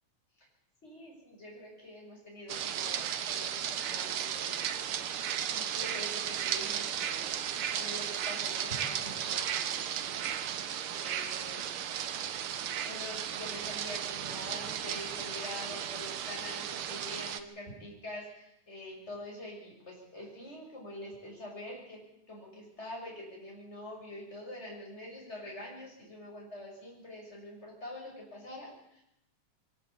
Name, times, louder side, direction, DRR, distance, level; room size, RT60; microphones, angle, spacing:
voice 1, 0.8-5.1 5.5-7.3 7.7-10.3 11.0-11.8 12.8-22.0 22.3-29.0, left 1 dB, 20° left, -2 dB, 6.8 m, -45 dB
sound 1, 2.5-17.4, right 9 dB, 65° right, 1.4 m, -35 dB
23.0 x 13.5 x 8.6 m, 0.79 s
omnidirectional pair, 3.5 m